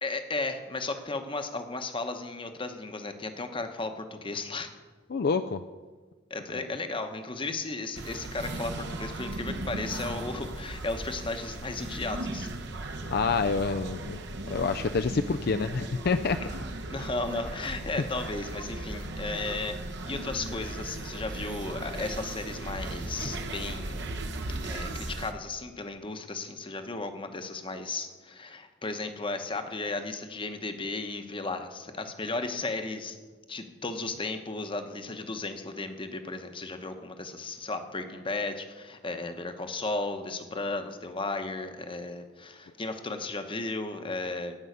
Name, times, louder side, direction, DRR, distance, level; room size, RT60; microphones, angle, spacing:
voice 1, 0.0-4.7 6.3-12.5 16.4-16.5 16.9-19.8 20.0-24.2 24.6-33.2 33.5-44.6, left 3 dB, 25° left, 7 dB, 1.0 m, -35 dB
voice 2, 5.1-5.6 13.1-14.2 14.5-16.4, left 4 dB, 55° left, 8 dB, 0.4 m, -27 dB
sound 1, 7.9-25.3, right 2 dB, 60° right, 1.0 m, -37 dB
15.0 x 5.5 x 9.3 m, 1.4 s
head